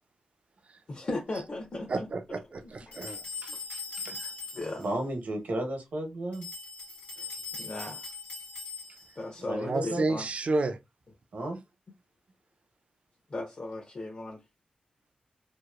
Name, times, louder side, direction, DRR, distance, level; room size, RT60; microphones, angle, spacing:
voice 1, 0.9-2.1 2.6-3.2 3.5-3.6 4.5-4.9 7.2-8.1 9.2-10.3 13.3-14.4, left 2 dB, 40° left, 0.7 m, -37 dB
voice 2, 1.9-4.3 9.6-10.8, right 3 dB, 50° right, 0.4 m, -32 dB
sound 1, 2.9-4.9 6.3-9.2, left 4 dB, 90° left, 1.2 m, -40 dB
voice 3, 4.8-6.5 9.4-10.0 11.3-11.6, right 1 dB, 75° right, 0.9 m, -33 dB
2.8 x 2.0 x 2.3 m
cardioid pair, 75°, 3 cm